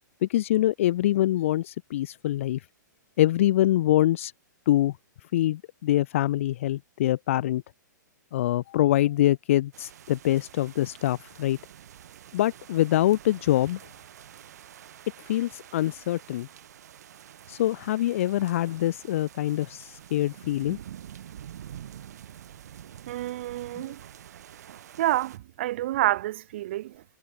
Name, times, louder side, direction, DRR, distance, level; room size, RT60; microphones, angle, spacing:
voice 1, 0.2-2.6 3.2-4.3 4.7-5.0 5.3-7.6 8.3-11.6 12.3-13.8 15.3-16.5 17.5-20.8, left 14 dB, 45° left, 0.6 m, -24 dB
sound 1, 9.7-25.4, right 10 dB, 60° right, 5.7 m, -47 dB
voice 2, 23.1-24.0 25.0-27.0, right 15 dB, 40° right, 0.3 m, -28 dB
hypercardioid pair, 170°, 10 cm